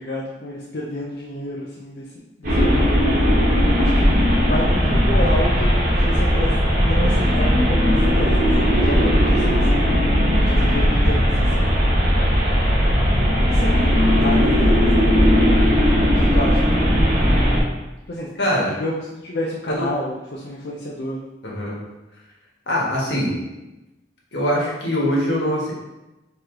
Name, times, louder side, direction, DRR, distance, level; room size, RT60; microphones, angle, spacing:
voice 1, 0.0-2.0 2.4-2.8 3.8-8.3 8.7-10.0 10.3-11.3 11.5-11.9 13.5-15.1 16.1-17.1 18.1-18.3 18.8-21.2, left 1 dB, 65° left, -3 dB, 0.5 m, -30 dB
sound 1, 2.4-17.6, equal, 50° right, 1.3 m, -17 dB
voice 2, 18.4-18.8 19.7-19.9 21.4-21.7 22.7-23.3 24.3-25.7, equal, 85° left, -4 dB, 1.4 m, -23 dB
4.6 x 3.1 x 3.7 m, 1.0 s
head